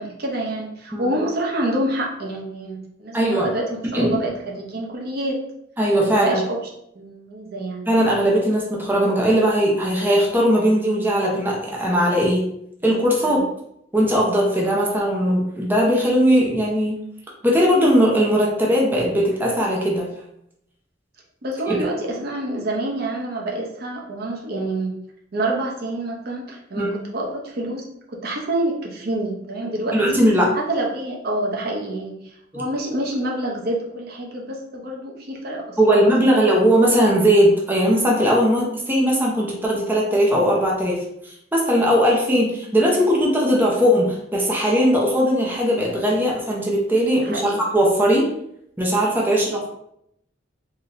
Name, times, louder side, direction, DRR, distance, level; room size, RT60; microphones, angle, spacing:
voice 1, 0.0-5.4 6.1-6.6 6.9-7.9 13.2-13.4 21.4-25.0 25.3-30.2 30.5-32.2 32.5-36.0 36.2-36.3 47.2-47.6 49.3-49.6, right 1 dB, 55° right, -1 dB, 0.7 m, -27 dB
voice 2, 3.1-3.5 3.9-4.2 5.8-6.4 7.9-12.5 12.8-13.4 13.9-17.0 17.4-20.1 21.7-21.8 26.7-26.9 29.9-30.5 32.5-32.6 35.8-48.3 48.8-49.7, equal, 10° right, -3 dB, 0.7 m, -19 dB
3.9 x 2.6 x 3.2 m, 0.76 s
head